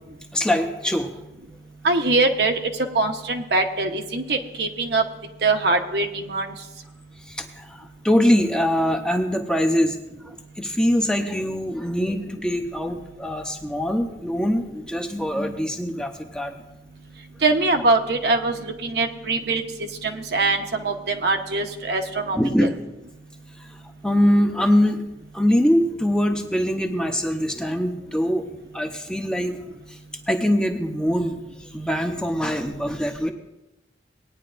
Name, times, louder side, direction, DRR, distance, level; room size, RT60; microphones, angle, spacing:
voice 1, 0.3-1.1 7.3-10.0 10.2-16.5 22.3-22.7 24.0-25.0 25.3-28.5 28.7-29.6 29.9-30.0 30.3-31.4 31.7-33.3, equal, 5° left, 4 dB, 0.6 m, -23 dB
voice 2, 1.8-2.6 2.9-5.0 5.4-6.5 17.4-19.6 20.0-22.7, right 3 dB, 65° right, 4 dB, 0.9 m, -22 dB
19.0 x 9.7 x 2.5 m, 0.97 s
head